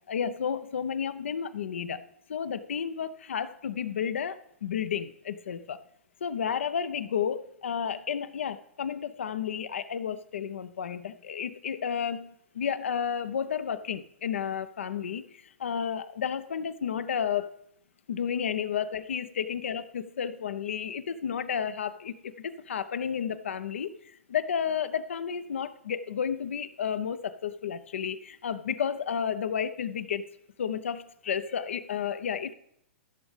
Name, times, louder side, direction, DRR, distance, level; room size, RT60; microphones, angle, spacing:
voice 1, 0.1-2.0 2.3-5.8 6.2-17.6 18.1-30.2 30.6-32.5, left 7 dB, 70° left, 13 dB, 0.7 m, -32 dB
14.5 x 7.1 x 3.3 m, 0.73 s
figure-of-eight pair, 110°, 7 cm